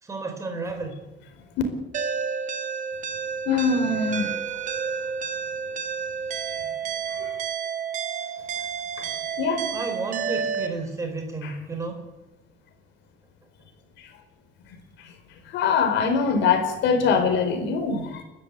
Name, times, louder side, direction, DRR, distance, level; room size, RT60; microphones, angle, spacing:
voice 1, 0.0-1.0 9.7-12.0, right 3 dB, 15° right, 5 dB, 4.1 m, -32 dB
sound 1, 1.9-10.7, right 6 dB, 40° right, 1.8 m, -30 dB
voice 2, 3.4-4.4 7.1-7.4 9.0-9.1 9.4-9.7 11.4-11.5 14.0-14.1 14.7-15.1 15.4-18.2, left 5 dB, 65° left, 6 dB, 4.8 m, -24 dB
29.5 x 13.0 x 8.5 m, 1.0 s
cardioid pair, 175°, 20 cm